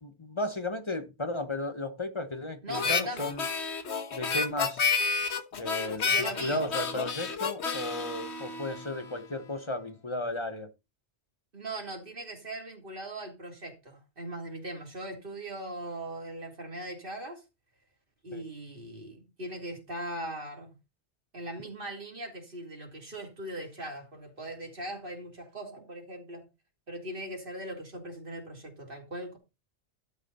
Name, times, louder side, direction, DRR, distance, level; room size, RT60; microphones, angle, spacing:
voice 1, 0.0-3.4 4.1-4.9 5.6-10.7 18.3-18.4, left 2 dB, 25° left, 1.0 m, -34 dB
voice 2, 2.6-3.3 6.0-6.6 11.5-17.4 18.2-20.8 21.3-26.5 26.9-29.4, right 1 dB, 50° right, 3.4 m, -40 dB
Harmonica, 2.7-9.2, left 5 dB, 70° left, 1.4 m, -31 dB
12.0 x 7.0 x 4.2 m
omnidirectional pair, 1.2 m